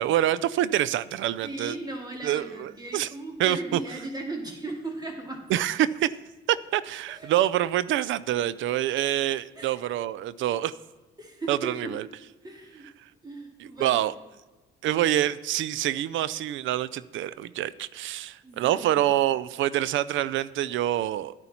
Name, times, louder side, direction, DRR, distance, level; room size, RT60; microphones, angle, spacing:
voice 1, 0.0-1.7 2.2-3.1 3.4-3.8 5.5-6.1 6.5-10.7 11.5-12.0 13.8-14.1 14.8-21.3, right 13 dB, 75° right, 17 dB, 0.4 m, -26 dB
voice 2, 1.4-5.4 7.1-7.3 9.6-9.8 11.2-11.9 12.4-12.9 13.2-14.1 18.4-19.0, right 2 dB, 20° right, 2 dB, 2.4 m, -37 dB
10.5 x 9.6 x 4.3 m, 1.2 s
cardioid pair, 90°, 20 cm